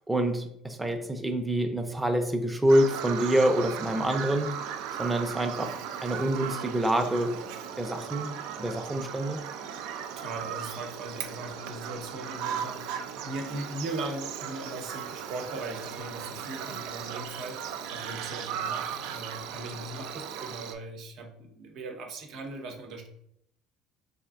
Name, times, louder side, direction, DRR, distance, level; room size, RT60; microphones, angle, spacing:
voice 1, 0.0-4.5 5.0-7.5 7.8-9.4, right 1 dB, 10° right, 5 dB, 0.5 m, -27 dB
Bird vocalization bird call bird song, 2.7-20.7, right 8 dB, 85° right, 0.3 m, -37 dB
voice 2, 10.0-23.1, right 2 dB, 65° right, 3 dB, 0.8 m, -39 dB
4.2 x 2.6 x 2.4 m, 0.73 s
supercardioid pair, 105°, 0 cm